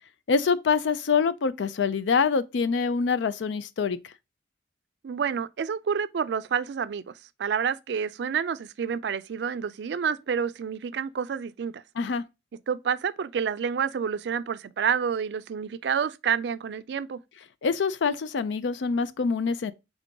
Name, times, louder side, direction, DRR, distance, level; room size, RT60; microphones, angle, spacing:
voice 1, 0.3-4.0 12.0-12.2 17.6-19.7, left 5 dB, 85° left, 0.4 m, -25 dB
voice 2, 5.0-7.1 7.4-11.8 12.7-17.2, right 7 dB, 65° right, 0.4 m, -29 dB
3.8 x 3.7 x 3.5 m
head